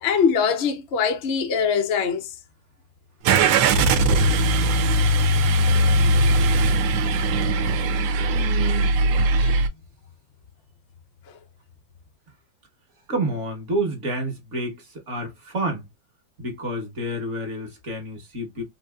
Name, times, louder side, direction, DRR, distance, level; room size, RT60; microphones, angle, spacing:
voice 1, 0.0-2.3 9.4-9.6, left 6 dB, 80° left, 0.6 m, -22 dB
Car / Engine starting, 3.2-9.7, right 2 dB, 80° right, 1.3 m, -19 dB
voice 2, 8.3-9.1 13.1-15.9 16.4-18.6, right 1 dB, 45° right, 1.2 m, -29 dB
3.9 x 2.6 x 2.2 m
omnidirectional pair, 2.1 m